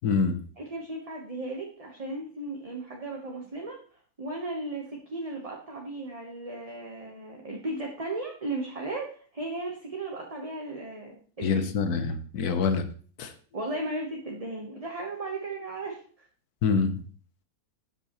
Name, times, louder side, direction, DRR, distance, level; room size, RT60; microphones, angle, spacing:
voice 1, 0.0-0.4 11.4-12.8 13.2-13.3 16.6-16.9, left 5 dB, 85° left, 9 dB, 1.5 m, -25 dB
voice 2, 0.6-3.8 4.2-11.7 13.5-16.3, right 2 dB, 25° right, 0 dB, 1.3 m, -36 dB
12.5 x 8.2 x 3.1 m, 0.43 s
omnidirectional pair, 1.6 m